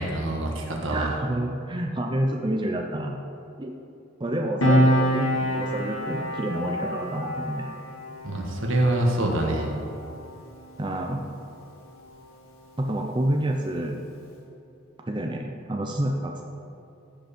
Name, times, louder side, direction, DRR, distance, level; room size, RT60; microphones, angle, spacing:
voice 1, 0.0-1.1 8.2-9.7, right 1 dB, 70° right, 0 dB, 1.6 m, -25 dB
voice 2, 0.9-3.2 3.6-3.7 4.2-7.7 10.8-11.3 12.8-14.0 15.1-16.4, right 1 dB, 20° right, 2 dB, 0.6 m, -28 dB
Piano, 4.6-11.6 11.9-12.1, equal, 90° left, 1.8 m, -27 dB
15.5 x 5.1 x 5.2 m, 2.7 s
head